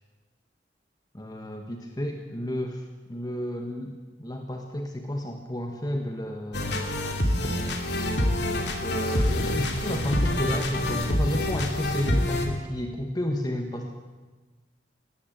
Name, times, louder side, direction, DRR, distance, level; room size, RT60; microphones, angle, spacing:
voice 1, 1.1-6.8 8.8-13.9, equal, 20° left, 3 dB, 1.5 m, -31 dB
sound 1, 6.5-12.5, left 1 dB, 70° left, 2.8 m, -26 dB
18.5 x 16.0 x 8.9 m, 1.3 s
head